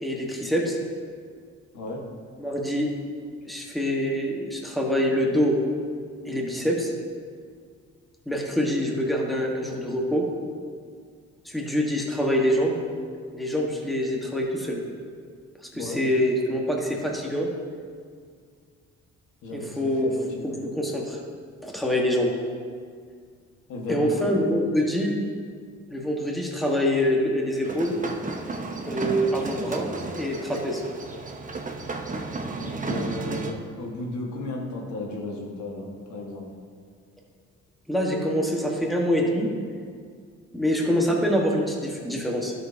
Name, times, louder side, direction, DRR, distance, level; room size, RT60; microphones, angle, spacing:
voice 1, 0.0-0.8 2.4-2.9 3.5-5.6 6.2-6.9 8.3-10.3 11.4-12.8 13.3-14.8 15.7-17.5 19.5-20.1 20.4-21.2 21.6-22.3 23.9-25.1 25.9-28.0 28.8-30.8 37.9-39.5 40.5-42.5, equal, ahead, -1 dB, 1.3 m, -25 dB
voice 2, 1.7-2.1 15.7-16.0 19.4-20.7 23.7-24.3 32.6-36.5, left 2 dB, 75° left, -1 dB, 1.6 m, -34 dB
sound 1, 27.6-33.5, right 3 dB, 25° right, 0.8 m, -33 dB
12.5 x 6.5 x 2.7 m, 2.1 s
cardioid pair, 90°, 30 cm